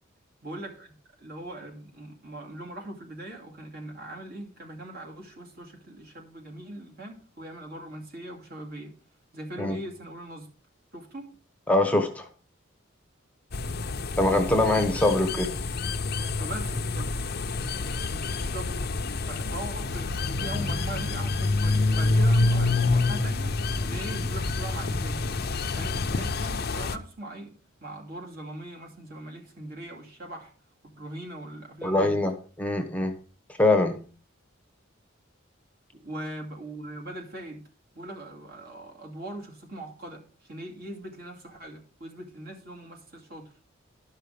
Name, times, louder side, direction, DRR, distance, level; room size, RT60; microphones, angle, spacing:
voice 1, 0.4-8.9 9.3-10.5 10.9-11.3 16.4-17.1 18.1-18.9 19.2-23.6 23.8-25.2 25.7-30.5 31.0-32.1 35.9-37.7 37.9-40.2 40.5-43.5, right 1 dB, 50° right, 2.5 m, -40 dB
voice 2, 11.7-12.3 14.2-15.5 31.8-32.3 32.6-33.1 33.6-34.0, left 2 dB, 5° left, 1.0 m, -23 dB
sound 1, 13.5-27.0, left 3 dB, 50° left, 0.7 m, -27 dB
12.0 x 5.6 x 5.0 m
head